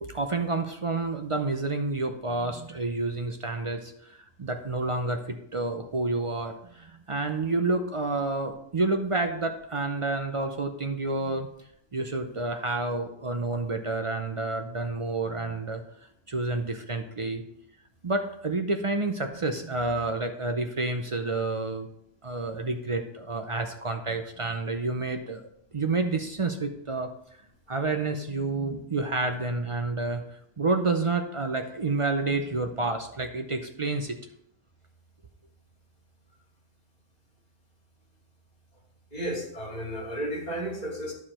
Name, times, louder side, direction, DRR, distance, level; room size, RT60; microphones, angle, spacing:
voice 1, 0.0-11.5 11.9-15.8 16.3-17.4 18.0-21.9 22.2-25.4 25.7-27.1 27.7-30.2 30.6-34.2, right 3 dB, 40° right, 5 dB, 0.4 m, -29 dB
voice 2, 39.1-41.1, right 1 dB, 30° left, -2 dB, 2.5 m, -33 dB
11.0 x 4.8 x 4.3 m, 0.72 s
omnidirectional pair, 1.3 m